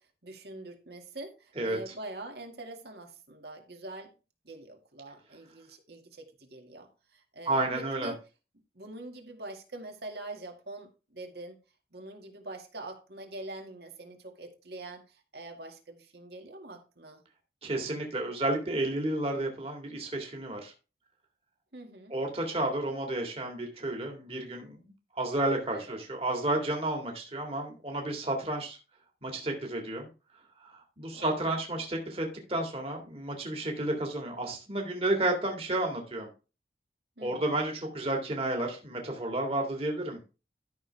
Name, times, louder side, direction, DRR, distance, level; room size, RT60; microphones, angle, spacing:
voice 1, 0.0-4.1 4.4-8.2 8.7-11.6 11.9-17.2 21.7-22.1 25.7-26.0 31.1-31.4 37.2-37.5, right 2 dB, 65° right, 3 dB, 2.2 m, -44 dB
voice 2, 7.5-8.1 17.6-20.7 22.1-28.8 29.2-30.1 30.7-36.3 37.2-40.2, right 1 dB, 35° right, 1 dB, 2.1 m, -31 dB
13.0 x 6.3 x 3.5 m, 0.32 s
head